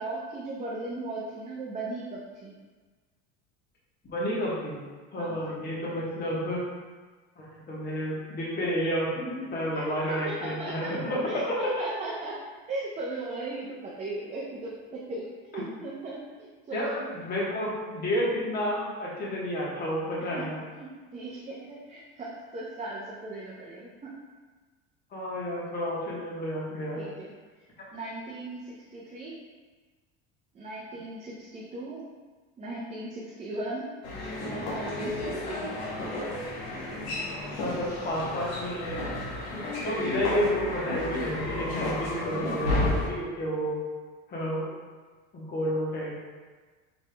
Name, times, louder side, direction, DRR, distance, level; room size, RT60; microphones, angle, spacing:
voice 1, 0.0-2.5 5.2-5.4 9.7-10.9 11.2-12.4 12.7-17.1 20.4-20.5 20.7-24.1 27.0-27.3 27.9-29.3 30.5-32.0 32.6-33.9 34.2-35.7, right 2 dB, 20° right, -5 dB, 0.6 m, -37 dB
voice 2, 4.0-4.8 5.1-6.6 7.4-11.7 15.5-15.6 16.7-20.6 25.1-27.1 37.6-38.9 39.5-43.7 44.3-44.7 45.3-46.1, equal, 30° left, -5 dB, 1.2 m, -31 dB
sound 1, 34.0-43.1, left 1 dB, 85° left, 1.2 m, -32 dB
5.1 x 3.4 x 2.2 m, 1.4 s
supercardioid pair, 110°, 31 cm